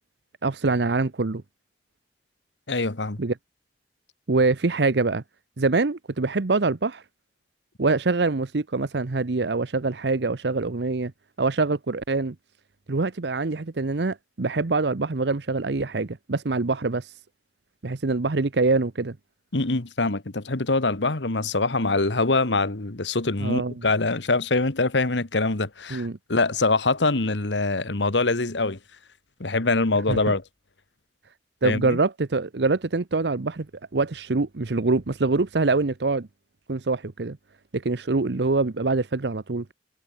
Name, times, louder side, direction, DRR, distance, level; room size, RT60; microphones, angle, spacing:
voice 1, 0.4-1.4 3.2-3.3 4.3-5.2 5.6-7.0 7.8-11.1 11.4-12.3 12.9-17.1 17.8-19.2 23.4-23.7 25.9-26.2 30.1-30.2 31.6-33.7 33.9-36.3 36.7-37.4 37.7-39.7, right 3 dB, 65° right, 0.8 m, -24 dB
voice 2, 2.7-3.2 19.5-28.8 29.4-30.4 31.6-32.0, left 3 dB, 85° left, 1.6 m, -24 dB
head